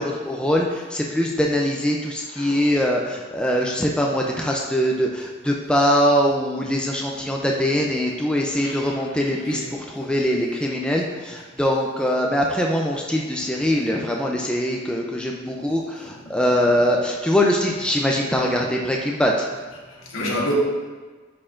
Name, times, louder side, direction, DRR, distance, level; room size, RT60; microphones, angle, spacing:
voice 1, 0.0-19.5, equal, 5° left, -1 dB, 0.4 m, -22 dB
voice 2, 8.6-9.7 10.0-10.1 13.6-13.7 15.7-16.1 16.6-16.7 19.9-20.5, left 1 dB, 85° left, -3 dB, 1.4 m, -31 dB
9.8 x 4.4 x 2.5 m, 1.3 s
head